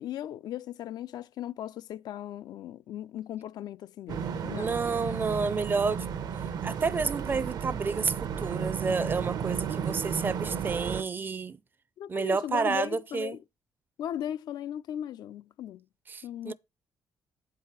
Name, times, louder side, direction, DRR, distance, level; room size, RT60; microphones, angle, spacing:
voice 1, 0.0-4.7 12.0-13.4 14.0-15.8 16.2-16.5, left 11 dB, 75° left, 0.4 m, -37 dB
sound 1, 4.1-11.0, right 7 dB, 70° right, 0.8 m, -33 dB
voice 2, 4.6-6.1 6.6-11.6 12.1-13.4 16.1-16.5, right 4 dB, 30° right, 0.4 m, -30 dB
8.1 x 4.8 x 5.8 m
cardioid pair, 120°, 7 cm